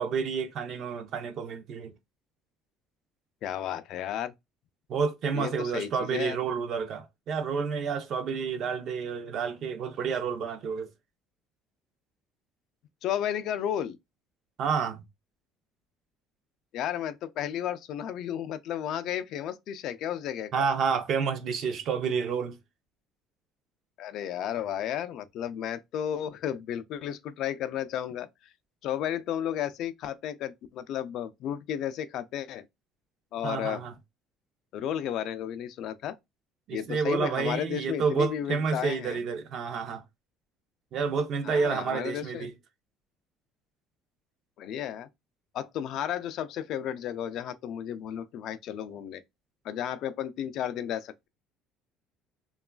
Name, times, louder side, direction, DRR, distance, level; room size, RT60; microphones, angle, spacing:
voice 1, 0.0-1.9 4.9-10.9 14.6-15.0 20.5-22.6 33.4-33.9 36.7-40.0 40.9-42.5, right 5 dB, 50° right, 0.5 m, -29 dB
voice 2, 3.4-4.3 5.3-6.4 13.0-14.0 16.7-20.7 24.0-28.5 28.8-32.6 33.3-33.8 34.7-36.2 36.7-39.2 41.4-42.5 44.6-45.1 45.5-49.2 49.6-51.3, left 10 dB, 55° left, 0.3 m, -33 dB
3.0 x 2.3 x 2.2 m
cardioid pair, 150°, 0 cm